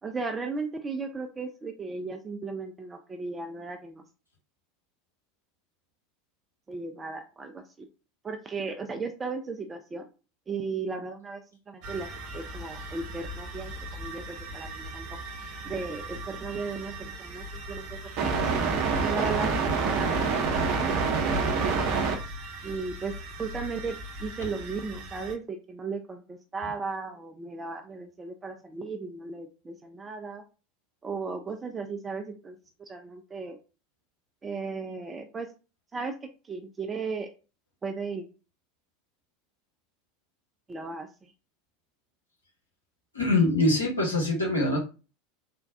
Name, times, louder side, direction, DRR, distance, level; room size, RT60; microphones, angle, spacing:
voice 1, 0.0-4.0 6.7-7.9 8.2-10.1 10.5-12.1 12.3-15.1 15.6-18.0 19.0-22.1 22.6-30.4 31.0-33.6 34.4-35.5 35.9-37.3 37.8-38.3 40.7-41.3, right 4 dB, 20° right, 6 dB, 0.4 m, -36 dB
sound 1, 11.8-25.3, right 4 dB, 50° right, 0.7 m, -31 dB
voice 2, 43.1-44.8, left 2 dB, 85° left, -2 dB, 1.1 m, -24 dB
3.4 x 2.2 x 2.5 m, 0.33 s
figure-of-eight pair, 75°, 0 cm